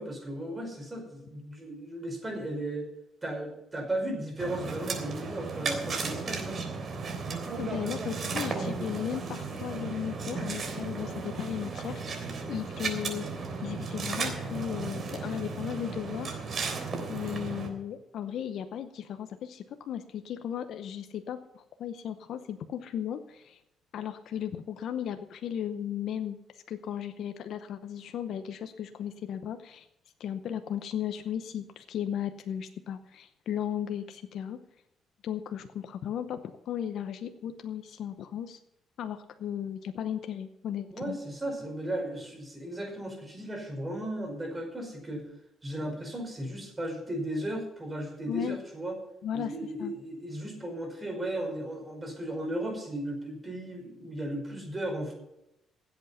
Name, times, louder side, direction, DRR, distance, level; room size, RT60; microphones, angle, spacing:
voice 1, 0.0-2.9 3.2-6.7 40.9-45.3 45.6-49.0 49.3-55.2, right 1 dB, 20° right, 3 dB, 5.1 m, -35 dB
sound 1, 4.4-17.7, right 4 dB, 50° right, 3.4 m, -35 dB
voice 2, 7.6-13.3 13.6-16.4 17.1-23.6 23.9-26.4 26.7-29.9 30.2-34.6 35.2-38.6 39.0-41.2 48.3-48.6 49.2-49.5 49.8-49.9, left 9 dB, 70° left, 8 dB, 0.8 m, -36 dB
16.5 x 8.2 x 5.6 m, 0.86 s
cardioid pair, 90°, 0 cm